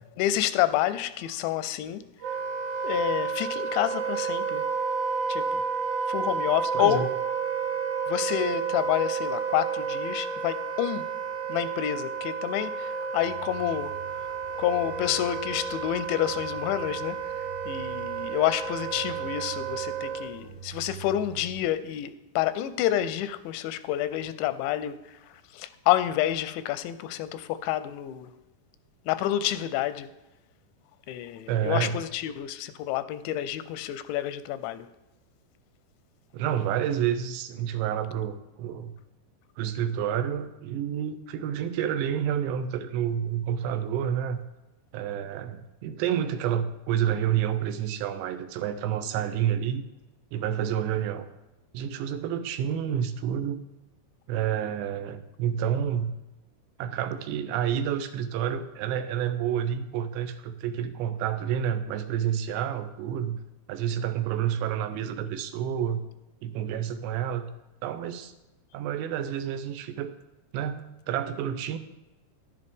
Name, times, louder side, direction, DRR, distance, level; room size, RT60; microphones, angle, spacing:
voice 1, 0.2-2.0 2.8-4.7 5.3-5.6 6.1-7.1 8.1-11.1 11.5-14.0 14.6-28.3 29.1-30.1 31.1-34.9, left 12 dB, 90° left, 13 dB, 2.9 m, -29 dB
Wind instrument woodwind instrument, 2.2-20.4, right 6 dB, 50° right, 2.0 m, -31 dB
voice 2, 6.7-7.1 31.5-32.0 36.3-38.9 39.6-44.4 44.9-49.8 50.3-51.3 51.7-53.6 54.3-56.1 56.8-63.4 63.7-66.0 66.4-67.5 67.8-68.3 68.7-70.1 70.5-71.8, right 9 dB, 80° right, 10 dB, 2.9 m, -29 dB
sound 1, 13.2-21.6, right 8 dB, 65° right, 2.7 m, -46 dB
11.0 x 10.5 x 3.6 m, 1.0 s
omnidirectional pair, 5.1 m